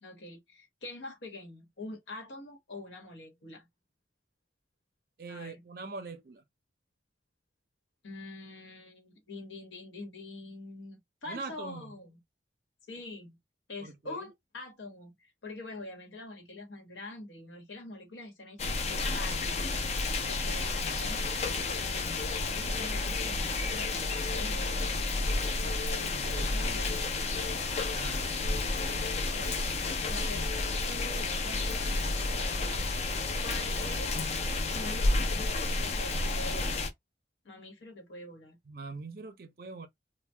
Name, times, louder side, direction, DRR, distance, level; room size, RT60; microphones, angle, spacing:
voice 1, 0.0-3.7 5.3-5.6 8.0-12.2 12.9-13.4 13.7-24.9 25.9-27.0 29.3-30.5 30.9-32.9 33.4-34.4 34.7-36.9 37.4-38.6, left 2 dB, 85° left, 1.0 m, -45 dB
voice 2, 5.2-6.4 11.3-11.9 13.8-14.2 26.1-27.2 27.9-28.4 38.7-39.9, right 3 dB, 50° right, 0.5 m, -43 dB
sound 1, 18.6-36.9, left 3 dB, 35° left, 0.4 m, -31 dB
2.7 x 2.1 x 3.2 m
head